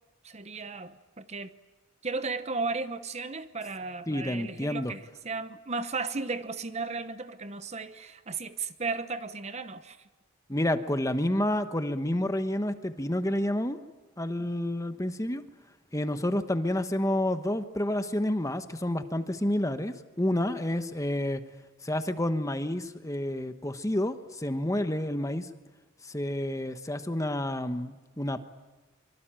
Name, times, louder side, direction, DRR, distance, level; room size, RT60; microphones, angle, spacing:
voice 1, 0.2-1.5 2.0-10.0, right 4 dB, 30° right, 12 dB, 0.9 m, -35 dB
voice 2, 4.1-4.9 10.5-13.8 14.2-15.4 15.9-21.4 21.8-25.5 26.0-28.4, left 1 dB, 15° left, 9 dB, 1.2 m, -29 dB
24.5 x 24.5 x 9.0 m, 1.2 s
head